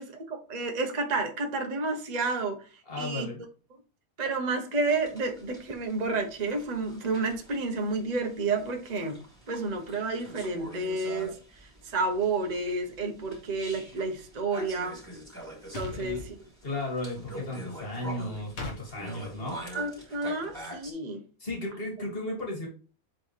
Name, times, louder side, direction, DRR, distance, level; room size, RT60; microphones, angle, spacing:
voice 1, 0.0-2.6 3.0-3.3 4.2-9.2 9.5-15.0 15.7-16.4 19.7-21.2, right 3 dB, 35° right, 3 dB, 1.0 m, -30 dB
voice 2, 2.9-3.4 15.9-16.2 16.6-19.6 21.4-22.7, left 1 dB, 40° left, -1 dB, 2.5 m, -35 dB
sound 1, 4.9-20.9, right 1 dB, 15° right, 3.1 m, -46 dB
sound 2, 15.7-16.3 18.6-18.8, left 3 dB, 60° left, 1.6 m, -37 dB
7.8 x 4.1 x 3.2 m, 0.37 s
omnidirectional pair, 1.5 m